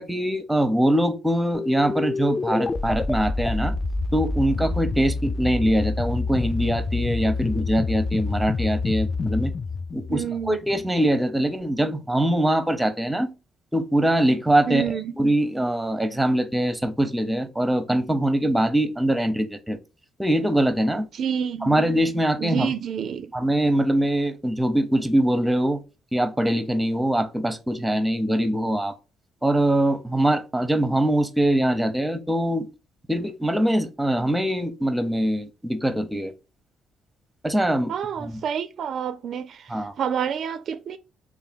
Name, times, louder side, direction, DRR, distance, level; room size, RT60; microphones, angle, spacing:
voice 1, 0.0-3.7 4.1-9.5 9.9-13.3 13.7-19.8 20.2-21.1 21.6-22.7 23.3-25.8 26.1-29.0 29.4-32.7 33.1-36.3 37.4-37.9 38.2-38.3 39.7-39.9, right 1 dB, 5° right, 0.7 m, -23 dB
sound 1, 1.5-10.9, left 3 dB, 30° left, 0.3 m, -27 dB
voice 2, 10.1-10.6 14.7-15.1 21.1-21.8 22.4-23.3 37.9-41.0, right 8 dB, 60° right, 0.3 m, -28 dB
3.2 x 2.5 x 4.0 m
supercardioid pair, 70°, 0 cm